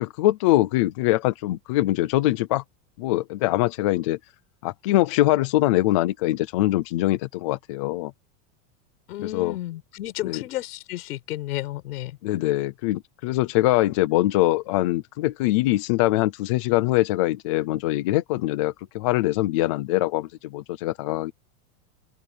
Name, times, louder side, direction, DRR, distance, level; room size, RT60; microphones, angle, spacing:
voice 1, 0.0-2.6 3.0-4.2 4.6-8.1 9.2-9.6 10.2-10.4 12.2-21.3, left 16 dB, 25° left, 0.4 m, -23 dB
voice 2, 9.1-12.2, left 15 dB, 85° left, 5.1 m, -32 dB
open air
supercardioid pair, 180°, 44 cm